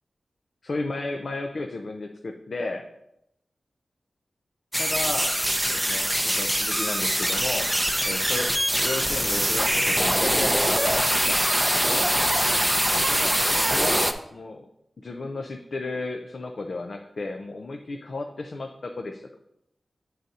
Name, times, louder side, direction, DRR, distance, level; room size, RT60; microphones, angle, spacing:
voice 1, 0.6-2.9 4.8-5.4 5.7-7.7 8.0-11.5 13.1-14.7 15.0-19.3, left 2 dB, 65° left, 4 dB, 0.5 m, -33 dB
sound 1, 4.7-14.1, equal, 5° right, 0.6 m, -23 dB
9.0 x 3.9 x 4.1 m, 0.82 s
wide cardioid pair, 65°, 0 cm